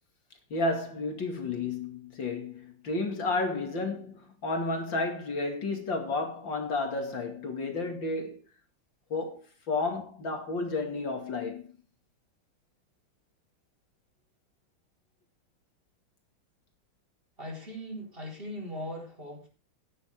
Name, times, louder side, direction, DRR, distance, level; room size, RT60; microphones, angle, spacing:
voice 1, 0.5-8.4 9.1-11.6, left 3 dB, 65° left, 3.0 m, -32 dB
voice 2, 17.4-19.5, equal, 25° right, 4.4 m, -39 dB
15.0 x 10.0 x 3.7 m
omnidirectional pair, 2.3 m